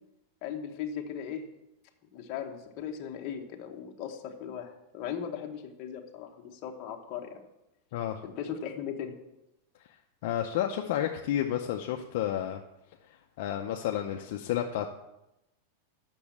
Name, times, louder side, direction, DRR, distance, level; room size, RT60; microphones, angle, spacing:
voice 1, 0.4-1.4 2.1-7.4 8.2-9.1, left 8 dB, 30° left, 1 dB, 1.1 m, -38 dB
voice 2, 10.2-12.6 13.4-15.1, left 11 dB, 45° left, 2 dB, 0.6 m, -31 dB
8.4 x 6.2 x 7.2 m, 0.91 s
supercardioid pair, 180°, 0 cm